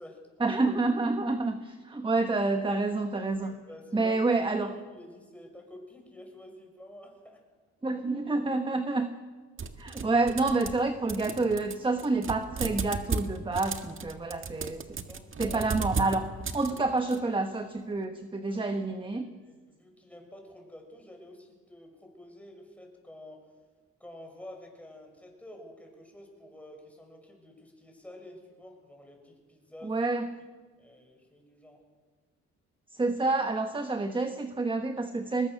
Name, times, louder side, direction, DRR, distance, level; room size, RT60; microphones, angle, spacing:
voice 1, 0.4-3.5 3.9-4.7 7.8-9.1 9.8-15.0 15.4-16.3 16.5-19.3 29.8-30.3 32.9-35.5, right 3 dB, 15° right, 7 dB, 1.3 m, -28 dB
voice 2, 3.4-7.4 9.9-10.0 15.1-15.6 16.7-16.8 18.4-18.6 18.9-23.5 24.0-30.0 30.8-31.8, left 1 dB, 5° left, 1 dB, 6.6 m, -49 dB
sound 1, 9.6-10.8 11.1-17.2, right 5 dB, 40° right, 1.7 m, -35 dB
22.5 x 20.5 x 6.5 m, 1.4 s
cardioid pair, 90°, 30 cm